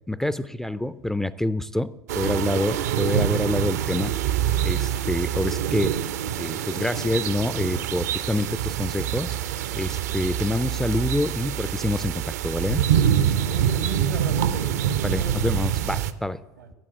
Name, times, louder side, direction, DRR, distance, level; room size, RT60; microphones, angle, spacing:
voice 1, 0.1-4.1 4.6-5.9 6.4-9.3 9.7-12.8 15.0-16.4, left 1 dB, 5° left, 15 dB, 0.3 m, -26 dB
sound 1, 2.1-16.1, right 10 dB, 65° right, 0.5 m, -25 dB
voice 2, 13.4-15.3 16.6-16.7, right 2 dB, 80° right, 9 dB, 1.2 m, -35 dB
7.8 x 7.6 x 8.5 m, 1.1 s
figure-of-eight pair, 75°, 10 cm